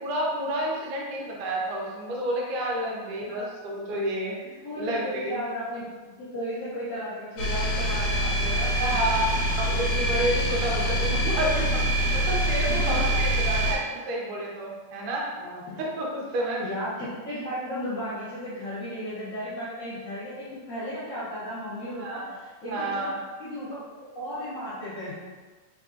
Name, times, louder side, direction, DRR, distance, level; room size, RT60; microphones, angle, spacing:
voice 1, 0.0-4.4 4.8-5.4 8.8-9.3 9.6-15.3 15.8-16.6 22.0-22.3 22.7-23.2, right 1 dB, 80° right, -3 dB, 2.4 m, -30 dB
voice 2, 4.4-5.9 6.2-8.7 12.7-13.1 15.3-15.8 16.6-25.1, equal, 85° left, -13 dB, 0.7 m, -35 dB
sound 1, 7.4-13.7, equal, 65° left, 1.5 m, -25 dB
4.7 x 3.6 x 2.5 m, 1.4 s
omnidirectional pair, 3.6 m